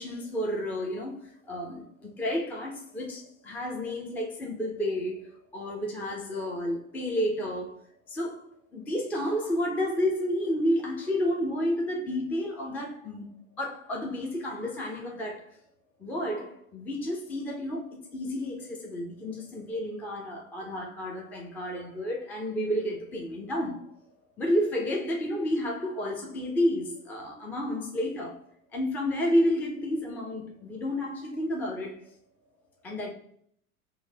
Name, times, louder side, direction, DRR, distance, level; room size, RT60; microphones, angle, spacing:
voice 1, 0.0-7.8 8.1-8.5 8.7-13.3 13.6-15.5 16.0-23.8 24.4-28.4 28.7-32.0 32.8-33.1, equal, 5° left, 0.3 m, -31 dB
3.0 x 2.1 x 3.3 m
figure-of-eight pair, 85°, 43 cm